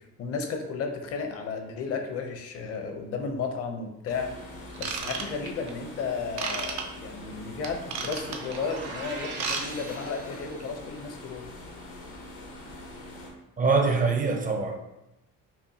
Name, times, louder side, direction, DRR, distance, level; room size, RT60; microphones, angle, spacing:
voice 1, 0.2-4.3 4.8-11.4, left 5 dB, 55° left, 0.7 m, -33 dB
sound 1, 4.1-13.3, left 1 dB, 90° left, 1.1 m, -43 dB
Ratchet pawl / Tools, 4.7-5.7 6.4-6.8 7.6-8.6 9.2-9.6 9.9-10.1 10.6-10.7, right 5 dB, 65° right, 0.7 m, -32 dB
sound 2, 8.0-10.8, right 3 dB, 85° right, 1.3 m, -41 dB
voice 2, 13.6-14.8, right 4 dB, 30° right, 0.5 m, -24 dB
5.6 x 2.2 x 2.8 m
cardioid pair, 120°, 29 cm